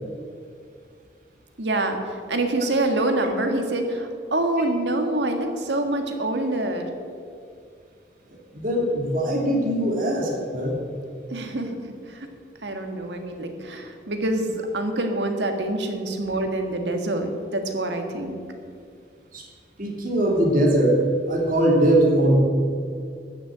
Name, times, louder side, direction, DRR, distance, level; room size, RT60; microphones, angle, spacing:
voice 1, 1.6-6.8 11.3-11.8 12.1-12.3 12.6-18.4, right 1 dB, 85° right, 5 dB, 1.7 m, -26 dB
voice 2, 8.5-10.8 19.3-19.4 19.8-21.0 21.3-22.4, right 1 dB, 50° right, -2 dB, 2.6 m, -21 dB
13.5 x 6.8 x 8.8 m, 2.2 s
head